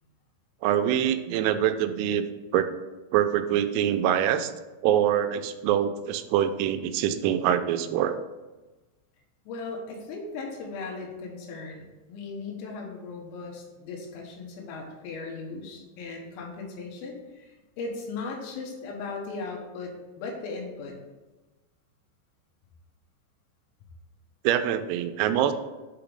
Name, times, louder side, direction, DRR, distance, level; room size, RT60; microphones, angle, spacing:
voice 1, 0.6-2.2 2.5-2.7 3.1-4.5 4.8-8.2 24.4-25.5, right 10 dB, 90° right, 9 dB, 3.3 m, -24 dB
voice 2, 9.5-19.9 20.2-21.0, left 4 dB, 85° left, 0 dB, 3.8 m, -37 dB
8.5 x 3.0 x 5.0 m, 1.2 s
omnidirectional pair, 6.0 m